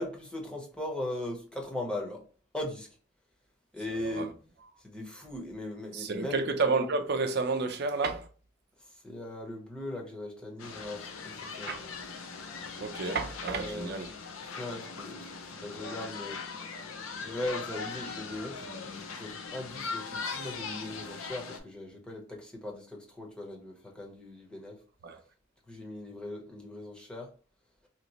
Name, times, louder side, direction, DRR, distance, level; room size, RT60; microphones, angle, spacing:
voice 1, 0.0-2.2 2.5-2.9 3.7-4.3 4.8-6.4 9.0-11.9 13.5-14.0 14.6-16.4 17.2-24.7 25.7-27.3, left 1 dB, 5° left, 0.8 m, -39 dB
voice 2, 3.9-4.3 5.9-8.3 11.7-11.8 12.8-14.1 25.0-25.2, right 4 dB, 55° right, 0.5 m, -30 dB
sound 1, 10.6-21.6, left 5 dB, 85° left, 0.5 m, -40 dB
2.9 x 2.1 x 4.0 m
head